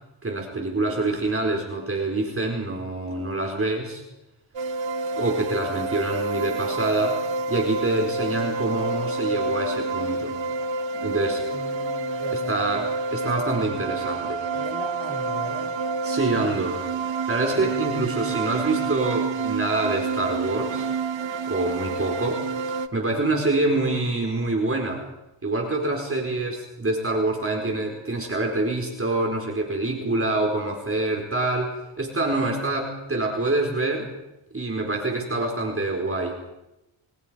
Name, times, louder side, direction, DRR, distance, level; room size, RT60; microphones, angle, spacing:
voice 1, 0.2-4.0 5.2-7.2 7.5-10.4 10.9-11.4 12.5-14.5 16.0-16.8 17.3-20.9 21.5-22.4 22.9-25.0 25.4-34.1 34.5-36.4, right 2 dB, 25° right, 1 dB, 4.7 m, -26 dB
sound 1, 4.5-22.9, right 3 dB, 65° right, 1.3 m, -28 dB
voice 2, 11.5-12.9 14.5-15.8 17.5-17.7, left 1 dB, 10° left, 1 dB, 7.1 m, -39 dB
28.5 x 24.0 x 5.2 m, 0.93 s
wide cardioid pair, 115°, 49 cm